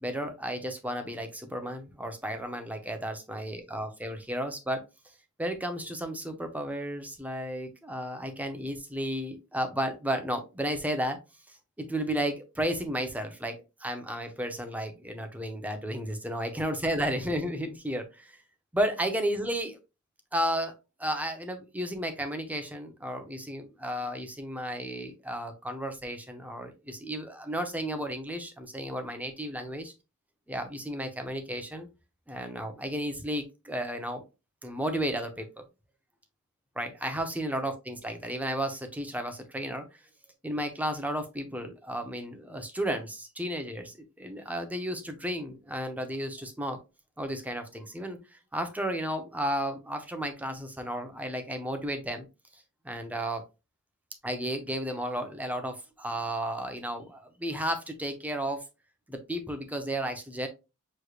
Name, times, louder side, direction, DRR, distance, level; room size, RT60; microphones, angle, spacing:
voice 1, 0.0-4.9 5.4-11.2 11.5-18.4 18.7-19.8 20.3-20.7 21.0-29.9 30.5-31.9 32.3-34.2 34.6-35.7 36.8-39.8 40.4-46.8 47.2-52.3 52.5-53.4 54.2-58.6 59.1-60.5, equal, 5° right, 6 dB, 0.7 m, -33 dB
6.3 x 3.2 x 2.4 m, 0.27 s
head